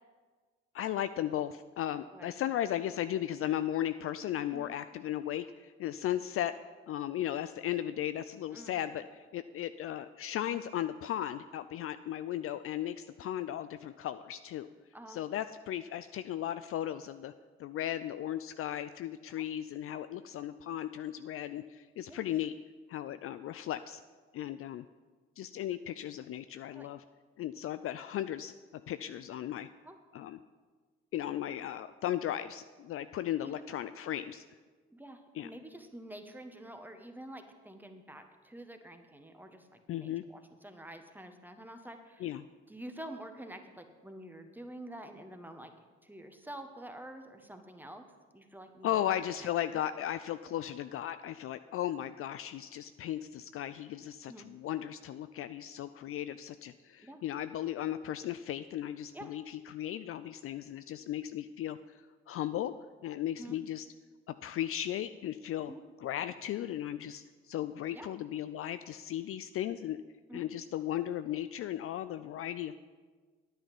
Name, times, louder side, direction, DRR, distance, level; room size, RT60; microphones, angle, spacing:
voice 1, 0.7-6.5 6.9-14.7 15.1-17.3 17.6-22.6 22.9-24.0 24.3-24.8 25.4-27.0 27.4-29.7 30.1-30.4 31.1-34.4 35.3-35.5 39.9-40.2 42.2-42.4 48.8-62.7 63.0-63.9 64.3-65.7 66.0-70.0 70.3-72.7, left 11 dB, 50° left, 12 dB, 0.4 m, -36 dB
voice 2, 33.4-33.7 34.9-42.3 42.7-45.7 46.0-48.1 48.3-49.0 49.7-49.8 54.3-54.5 57.0-57.2 59.1-59.4 63.4-63.6 65.6-65.8 67.9-68.1 70.3-70.5, right 1 dB, 5° right, 6 dB, 1.3 m, -48 dB
10.0 x 9.0 x 5.3 m, 1.4 s
hypercardioid pair, 45°, 30 cm